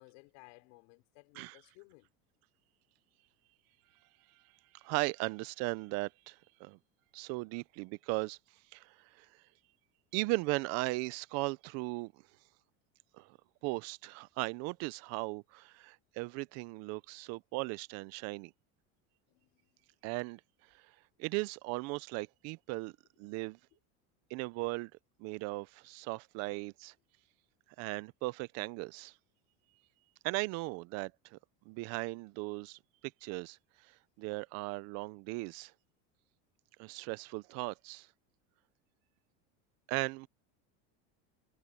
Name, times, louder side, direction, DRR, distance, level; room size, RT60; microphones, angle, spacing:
voice 1, 0.0-2.1 19.3-19.8, left 29 dB, 65° left, 4.8 m, -59 dB
voice 2, 4.7-6.8 7.1-8.4 8.7-9.3 10.1-12.1 13.2-13.3 13.6-18.5 20.0-20.4 21.2-22.9 23.2-23.6 24.3-24.9 25.2-26.9 27.8-29.1 30.2-31.4 31.7-32.8 33.2-33.6 34.2-35.7 36.8-38.1 39.9-40.3, right 24 dB, 45° right, 0.5 m, -37 dB
cardioid pair, 160°, 35 cm